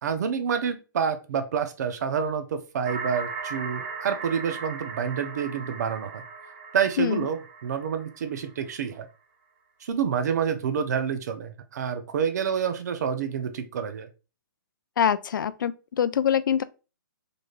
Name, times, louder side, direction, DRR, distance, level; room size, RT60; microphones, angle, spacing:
voice 1, 0.0-6.2 6.7-9.1 9.8-14.1, right 7 dB, 50° right, 0.7 m, -28 dB
sound 1, 2.9-8.6, right 5 dB, 35° right, 1.1 m, -38 dB
voice 2, 15.0-16.6, left 8 dB, 70° left, 0.4 m, -24 dB
3.9 x 3.3 x 2.4 m
hypercardioid pair, 165°, 11 cm